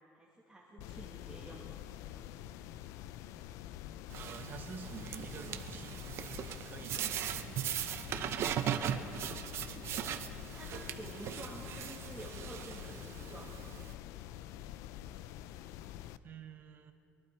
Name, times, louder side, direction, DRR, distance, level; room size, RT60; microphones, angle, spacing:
voice 1, 0.1-1.7 2.1-2.4 8.3-13.5, right 1 dB, 5° right, -6 dB, 1.9 m, -51 dB
sound 1, 0.8-16.2, left 12 dB, 80° left, 0.4 m, -47 dB
sound 2, 4.1-13.9, right 10 dB, 55° right, 0.7 m, -39 dB
voice 2, 4.2-7.6 16.2-16.9, right 6 dB, 40° right, 6 dB, 1.1 m, -48 dB
23.0 x 11.5 x 4.5 m, 2.7 s
cardioid pair, 145°, 5 cm